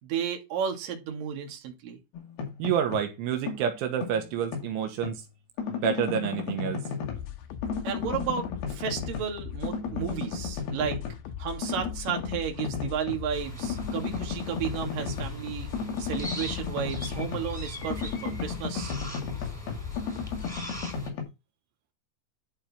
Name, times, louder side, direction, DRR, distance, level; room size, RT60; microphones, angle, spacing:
voice 1, 0.0-2.0 7.8-11.0 11.4-15.7 16.0-18.9, right 7 dB, 55° right, 3.6 m, -33 dB
sound 1, 2.1-3.1 3.5-5.2 5.6-7.3 7.6-9.4 9.6-11.2 11.6-13.2 13.6-17.6 17.9-21.2, left 6 dB, 60° left, 4.1 m, -34 dB
voice 2, 2.6-5.2 5.7-6.8, right 8 dB, 85° right, 3.7 m, -28 dB
sound 2, 7.0-20.6, left 10 dB, 80° left, 3.3 m, -40 dB
sound 3, 13.3-21.1, right 1 dB, ahead, 3.7 m, -41 dB
11.5 x 5.4 x 3.6 m
omnidirectional pair, 5.4 m